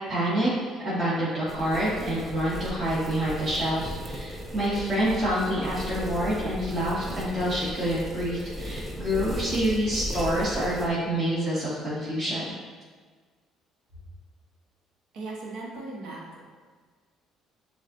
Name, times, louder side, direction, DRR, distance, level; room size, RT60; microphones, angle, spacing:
voice 1, 0.1-0.5 0.8-12.4, equal, 25° right, -11 dB, 1.5 m, -27 dB
sound 1, 1.5-10.9, equal, 10° right, 0.6 m, -36 dB
voice 2, 15.1-16.4, right 2 dB, 75° right, -3 dB, 1.1 m, -38 dB
7.1 x 2.4 x 2.7 m, 1.5 s
supercardioid pair, 85°, 0 cm